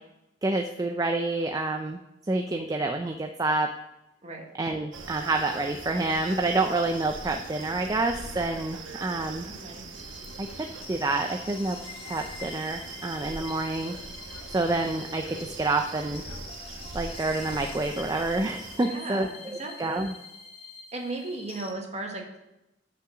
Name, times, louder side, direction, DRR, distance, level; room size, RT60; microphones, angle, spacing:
voice 1, 0.4-2.0 2.3-3.7 4.6-9.5 10.4-11.8 12.1-13.9 14.5-16.2 16.9-19.3 19.8-20.1, right 2 dB, 20° right, 4 dB, 0.4 m, -28 dB
sound 1, 4.9-18.8, right 3 dB, 75° right, 1.1 m, -41 dB
voice 2, 9.4-9.8 18.8-20.1 20.9-22.4, right 2 dB, 35° right, 2 dB, 1.2 m, -36 dB
sound 2, 9.9-21.7, left 4 dB, 30° left, 1.0 m, -45 dB
6.3 x 5.6 x 7.0 m, 0.91 s
head